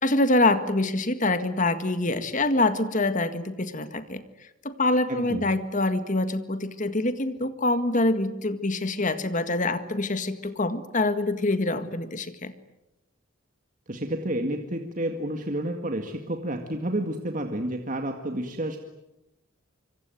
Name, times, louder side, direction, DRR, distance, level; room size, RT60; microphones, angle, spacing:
voice 1, 0.0-4.2 4.6-12.5, left 2 dB, 40° left, 11 dB, 1.8 m, -25 dB
voice 2, 5.1-5.4 13.9-18.8, right 1 dB, 40° right, 4 dB, 2.0 m, -30 dB
25.5 x 25.5 x 9.2 m, 0.91 s
head